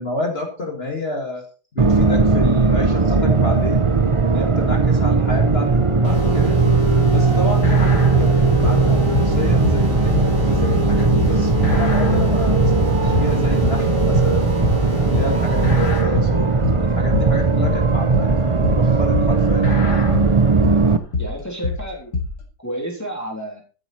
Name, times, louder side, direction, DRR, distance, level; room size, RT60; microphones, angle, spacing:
voice 1, 0.0-1.5 1.7-3.9 4.3-5.7 6.0-6.6 7.1-20.0, left 2 dB, 40° left, 2 dB, 2.0 m, -29 dB
sound 1, 1.8-21.0, right 4 dB, 30° right, 0.6 m, -18 dB
sound 2, 6.0-16.0, left 5 dB, 80° right, 7.9 m, -27 dB
sound 3, 6.6-22.4, left 4 dB, 90° left, 2.9 m, -25 dB
voice 2, 21.2-22.1 22.6-23.6, right 1 dB, 10° left, 0 dB, 3.1 m, -30 dB
13.5 x 7.7 x 4.2 m, 0.35 s
omnidirectional pair, 1.8 m